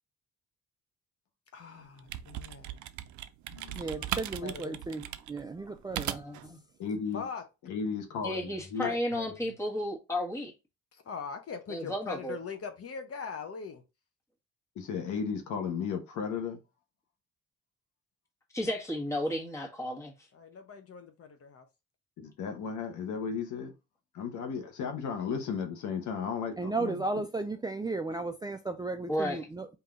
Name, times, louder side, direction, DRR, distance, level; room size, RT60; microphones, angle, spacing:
voice 1, 1.5-2.8 4.4-4.8 7.1-7.4 8.8-9.0 11.0-13.8 20.3-21.6, left 5 dB, 50° left, 0.9 m, -41 dB
sound 1, 1.8-6.5, right 12 dB, 70° right, 0.5 m, -38 dB
voice 2, 3.8-6.3 26.6-29.8, right 3 dB, 15° right, 0.4 m, -35 dB
voice 3, 6.0-6.6 8.2-10.5 11.7-12.4 18.5-20.1 29.1-29.4, left 1 dB, 10° left, 1.5 m, -33 dB
voice 4, 6.8-7.2 7.6-9.5 14.8-16.6 22.2-23.7 24.1-27.0, left 6 dB, 75° left, 1.1 m, -35 dB
3.9 x 2.8 x 3.7 m
cardioid pair, 90°, 30 cm